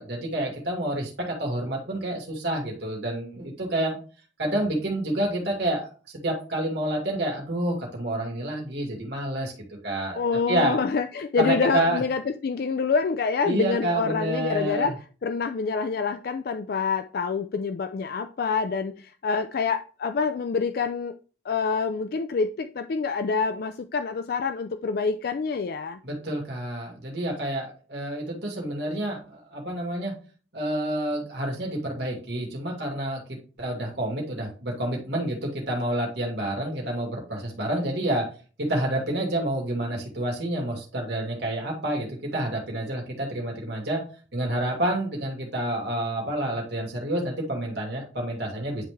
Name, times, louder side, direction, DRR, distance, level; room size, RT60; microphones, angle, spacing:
voice 1, 0.0-4.0 4.4-5.8 6.1-9.5 9.8-10.2 10.5-10.8 11.4-12.0 13.5-14.9 26.0-30.1 30.5-38.3 38.6-44.0 44.3-48.8, right 1 dB, 65° right, 2.2 m, -28 dB
voice 2, 10.2-14.9 15.2-21.2 21.4-26.0, left 5 dB, 55° left, 0.4 m, -26 dB
10.0 x 3.6 x 3.2 m
head